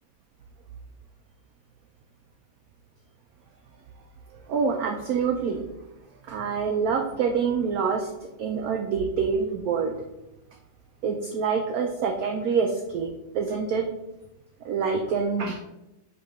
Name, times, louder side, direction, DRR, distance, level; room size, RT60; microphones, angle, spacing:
voice 1, 4.5-5.6 6.3-8.1 8.4-9.9 11.0-13.1 13.3-13.9 14.6-15.6, right 5 dB, 70° right, 3 dB, 0.9 m, -26 dB
5.7 x 3.4 x 5.4 m, 0.94 s
omnidirectional pair, 2.1 m